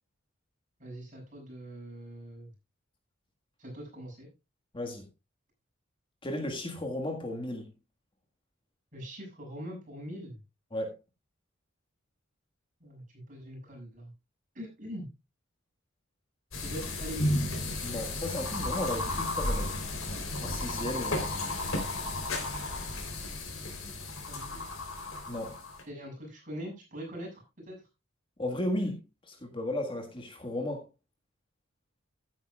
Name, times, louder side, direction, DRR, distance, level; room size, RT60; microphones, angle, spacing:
voice 1, 0.8-2.5 3.6-4.3 8.9-10.4 12.8-14.1 14.5-15.1 16.6-17.4 24.2-24.8 25.9-27.8, equal, 40° right, 6.6 m, -43 dB
voice 2, 4.7-5.1 6.2-7.7 10.7-11.0 17.8-19.9 20.4-21.6 25.3-25.6 28.4-30.9, left 1 dB, 25° left, 1.6 m, -35 dB
sound 1, 16.5-25.8, left 2 dB, 85° left, 3.6 m, -33 dB
15.0 x 9.2 x 2.4 m
head